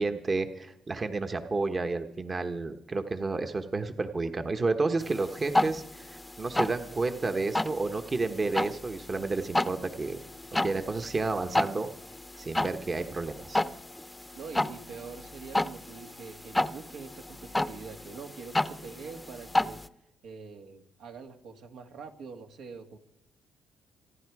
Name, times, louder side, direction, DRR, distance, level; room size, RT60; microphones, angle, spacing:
voice 1, 0.0-10.2 10.6-11.9 12.4-13.6, right 3 dB, 35° right, 7 dB, 1.2 m, -31 dB
sound 1, 5.0-19.9, left 1 dB, 10° left, 0.7 m, -33 dB
voice 2, 14.3-19.8 20.2-23.0, right 5 dB, 80° right, 4 dB, 2.2 m, -44 dB
26.5 x 10.5 x 4.8 m, 0.79 s
cardioid pair, 90°, 0 cm